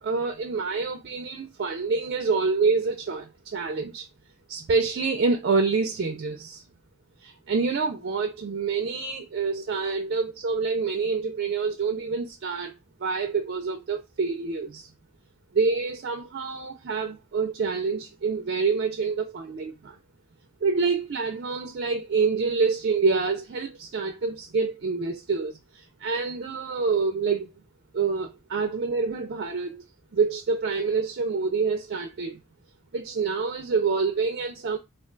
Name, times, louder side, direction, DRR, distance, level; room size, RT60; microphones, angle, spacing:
voice 1, 0.0-4.1 4.5-6.6 7.2-12.7 13.0-14.9 15.5-20.0 20.6-27.5 27.9-29.8 30.1-32.4 32.9-34.8, right 4 dB, 50° right, 0.4 m, -27 dB
2.4 x 2.3 x 3.7 m
head